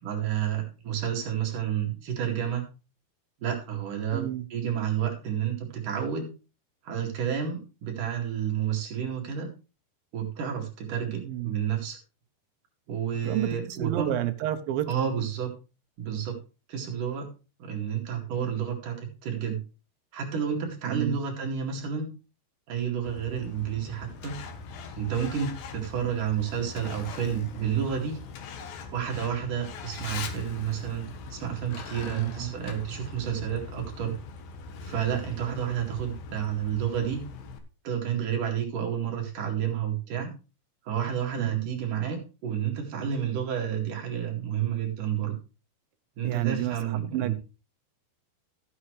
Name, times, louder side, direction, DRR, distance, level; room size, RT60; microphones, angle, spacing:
voice 1, 0.0-2.6 3.4-6.3 6.8-9.5 10.1-12.0 12.9-14.2 14.9-15.5 16.0-16.4 16.7-17.3 17.6-19.6 20.1-22.1 22.7-24.4 25.0-28.2 28.9-34.2 34.8-37.2 37.8-40.3 40.9-45.4 46.2-47.3, right 8 dB, 55° right, 3.6 m, -30 dB
voice 2, 4.1-4.5 11.2-11.5 13.2-15.1 20.9-21.2 32.0-32.5 41.4-41.7 46.2-47.3, right 13 dB, 75° right, 2.3 m, -31 dB
Truck, 23.0-37.6, left 4 dB, 70° left, 2.8 m, -41 dB
14.0 x 8.6 x 3.2 m
omnidirectional pair, 4.7 m